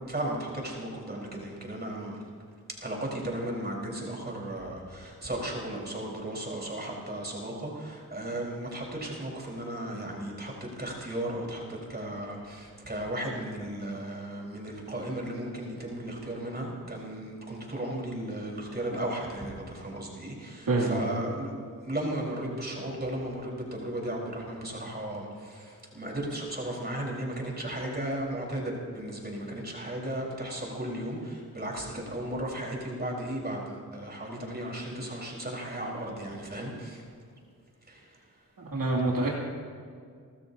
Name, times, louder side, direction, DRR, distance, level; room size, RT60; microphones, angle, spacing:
voice 1, 0.1-2.2 2.8-21.5 21.8-37.0 37.9-38.0, right 1 dB, 25° right, -2 dB, 4.4 m, -35 dB
voice 2, 20.7-21.1 38.6-39.4, right 2 dB, 65° right, -3 dB, 2.7 m, -26 dB
29.0 x 13.5 x 2.8 m, 2.2 s
cardioid pair, 75°, 37 cm